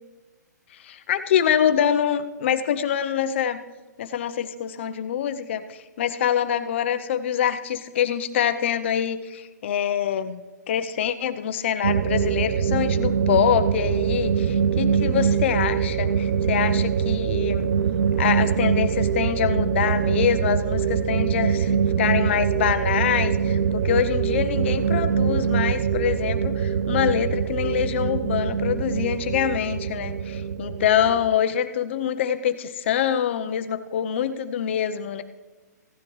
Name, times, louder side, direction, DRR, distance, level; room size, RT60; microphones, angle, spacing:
voice 1, 0.8-3.6 4.0-10.4 10.7-17.7 18.2-35.2, left 9 dB, 40° left, 10 dB, 0.7 m, -25 dB
sound 1, 11.8-31.3, right 7 dB, 65° right, 0.5 m, -23 dB
16.0 x 10.5 x 3.2 m, 1.3 s
hypercardioid pair, 165°, 10 cm